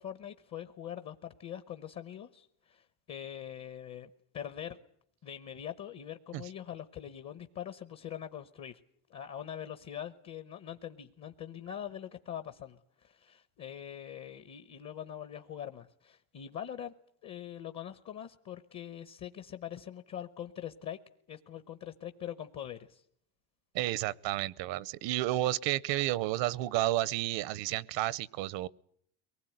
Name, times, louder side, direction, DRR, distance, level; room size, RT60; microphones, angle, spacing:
voice 1, 0.0-4.8 5.2-8.8 9.1-16.9 17.2-21.0 21.3-23.0, left 10 dB, 40° left, 1.1 m, -43 dB
voice 2, 23.7-28.7, right 15 dB, 75° right, 0.9 m, -31 dB
23.5 x 19.5 x 9.3 m
cardioid pair, 165°, 44 cm